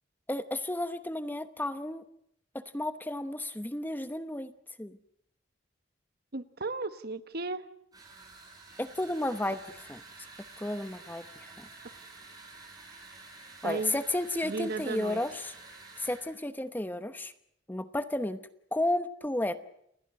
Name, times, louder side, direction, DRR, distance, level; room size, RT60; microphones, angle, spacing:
voice 1, 0.3-2.0 2.7-4.5 4.8-5.0 8.8-9.6 9.9-10.0 10.6-11.7 13.6-15.5 16.0-17.3 17.7-18.4 18.7-19.6, left 1 dB, 10° left, 11 dB, 0.9 m, -32 dB
voice 2, 6.3-7.6 13.6-14.0 14.4-15.2, right 3 dB, 55° right, 11 dB, 1.3 m, -35 dB
sound 1, 7.9-16.3, right 3 dB, 20° right, 7.8 m, -50 dB
29.5 x 20.0 x 6.5 m, 0.73 s
head